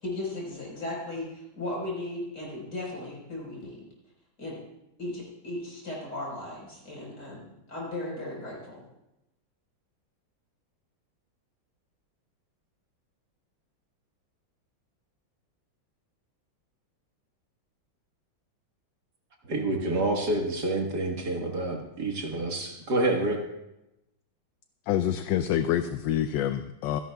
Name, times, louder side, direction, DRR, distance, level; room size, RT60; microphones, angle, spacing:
voice 1, 0.0-3.9 4.4-4.6 5.0-8.8, left 1 dB, 55° left, -3 dB, 5.2 m, -36 dB
voice 2, 19.5-23.4, right 2 dB, 55° right, 1 dB, 2.0 m, -28 dB
voice 3, 24.9-27.0, left 11 dB, 75° left, 10 dB, 1.1 m, -27 dB
25.5 x 11.0 x 2.3 m, 0.91 s
omnidirectional pair, 2.2 m